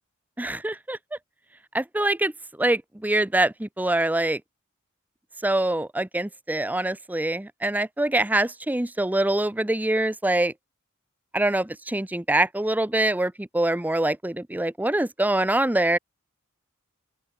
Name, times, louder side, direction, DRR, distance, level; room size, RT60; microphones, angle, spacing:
voice 1, 0.4-1.0 1.7-2.3 2.6-4.4 5.4-10.5 11.3-16.0, right 1 dB, 10° right, 0.6 m, -24 dB
open air
head